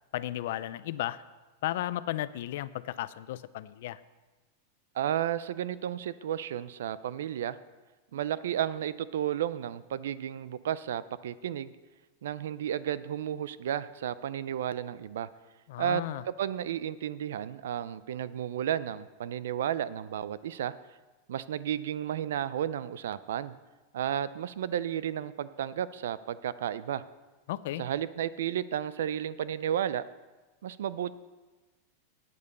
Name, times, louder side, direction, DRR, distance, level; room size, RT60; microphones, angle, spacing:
voice 1, 0.1-1.2 1.6-4.0 15.7-16.2 27.5-27.8, left 14 dB, 65° left, 16 dB, 0.4 m, -34 dB
voice 2, 4.9-7.6 8.1-11.7 12.2-15.3 15.8-16.0 16.4-20.7 21.3-23.5 23.9-27.0 27.8-30.0 30.6-31.1, right 10 dB, 85° right, 16 dB, 0.5 m, -32 dB
9.4 x 8.3 x 6.8 m, 1.2 s
supercardioid pair, 150°, 0 cm